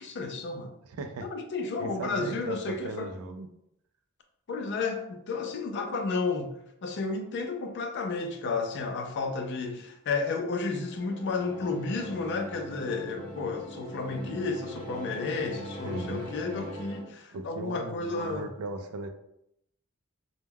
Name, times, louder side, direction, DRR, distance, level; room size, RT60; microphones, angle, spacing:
voice 1, 0.0-0.7 1.2-3.1 4.5-6.5 6.8-18.5, left 4 dB, 55° left, 5 dB, 0.4 m, -32 dB
voice 2, 0.8-1.3 1.8-3.5 15.8-16.3 17.3-19.1, right 3 dB, 75° right, 7 dB, 0.4 m, -37 dB
sound 1, 10.7-17.0, right 1 dB, 35° left, 1.0 m, -41 dB
2.2 x 2.1 x 3.3 m, 0.78 s
head